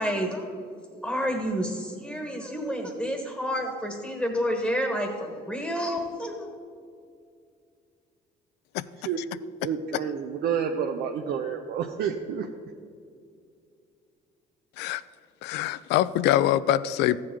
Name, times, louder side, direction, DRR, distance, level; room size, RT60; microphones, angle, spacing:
voice 1, 0.0-6.5, equal, 5° left, 3 dB, 1.3 m, -30 dB
voice 2, 9.6-12.5, right 7 dB, 70° right, 4 dB, 0.6 m, -29 dB
voice 3, 15.4-17.2, left 13 dB, 85° left, 17 dB, 0.4 m, -24 dB
14.0 x 7.5 x 3.7 m, 2.3 s
cardioid pair, 110°, 17 cm